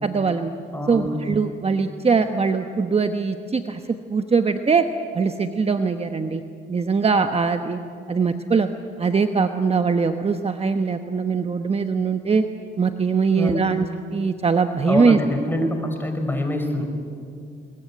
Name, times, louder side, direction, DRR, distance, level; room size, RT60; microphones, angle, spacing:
voice 1, 0.0-0.5 0.9-4.9 5.1-6.4 6.7-7.8 8.1-8.7 9.0-12.4 12.8-13.8 14.1-15.2, right 5 dB, 30° right, 7 dB, 1.1 m, -21 dB
voice 2, 0.7-1.2 13.3-13.7 14.8-16.9, left 1 dB, 10° left, 4 dB, 5.1 m, -25 dB
22.5 x 20.5 x 9.9 m, 2.4 s
cardioid pair, 90°, 20 cm